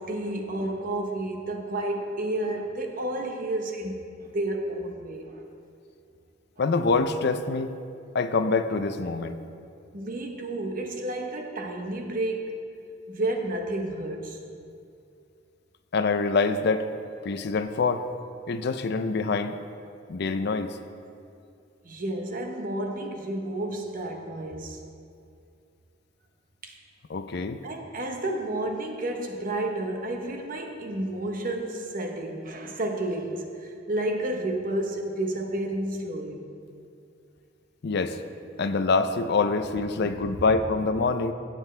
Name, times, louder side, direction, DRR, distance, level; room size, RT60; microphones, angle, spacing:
voice 1, 0.0-5.4 9.9-12.6 13.1-14.5 21.8-24.8 26.6-26.8 27.6-36.4 40.0-40.6, right 1 dB, 50° right, 3 dB, 1.1 m, -31 dB
voice 2, 6.6-7.7 8.1-9.4 15.9-16.9 17.2-18.0 18.5-19.6 20.1-20.8 27.1-27.6 37.8-38.2 38.6-41.3, left 4 dB, 60° left, 10 dB, 0.5 m, -25 dB
16.5 x 7.8 x 3.3 m, 2.5 s
head